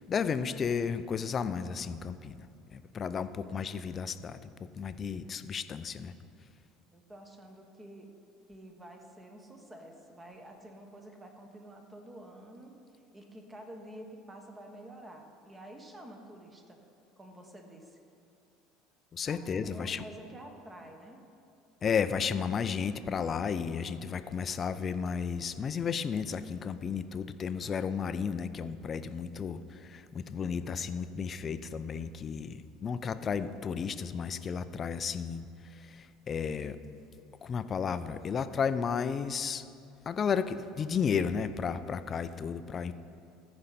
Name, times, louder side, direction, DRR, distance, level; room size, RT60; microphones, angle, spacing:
voice 1, 0.0-2.5 2.7-6.1 19.1-20.0 21.8-36.8 37.4-39.7 40.1-42.9, left 6 dB, 35° left, 13 dB, 0.4 m, -33 dB
voice 2, 6.9-8.1 8.5-12.8 13.1-16.8 17.2-18.0 19.2-21.2, right 1 dB, 20° right, 3 dB, 1.3 m, -49 dB
14.5 x 5.3 x 4.2 m, 2.5 s
hypercardioid pair, 70°, 0 cm